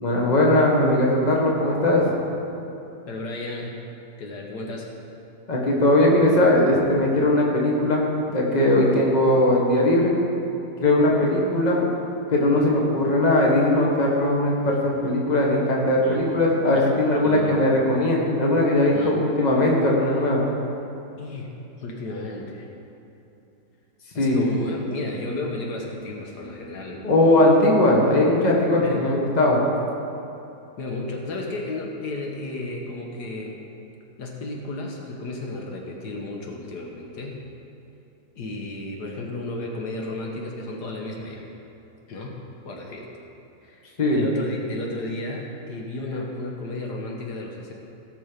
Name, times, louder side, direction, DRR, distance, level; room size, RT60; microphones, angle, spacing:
voice 1, 0.0-2.1 5.5-10.1 10.8-11.8 12.3-20.4 24.2-24.4 27.0-29.6 44.0-44.2, left 1 dB, 25° left, -2 dB, 1.5 m, -19 dB
voice 2, 3.1-3.7 4.2-4.9 16.0-16.2 16.7-16.9 17.2-17.6 18.9-19.2 21.2-22.7 24.1-27.1 27.4-27.6 28.7-29.1 30.8-33.6 34.2-37.4 38.4-41.5 42.1-43.1 43.6-47.7, left 2 dB, 70° left, 0 dB, 1.7 m, -33 dB
17.5 x 6.1 x 5.1 m, 2.9 s
omnidirectional pair, 1.8 m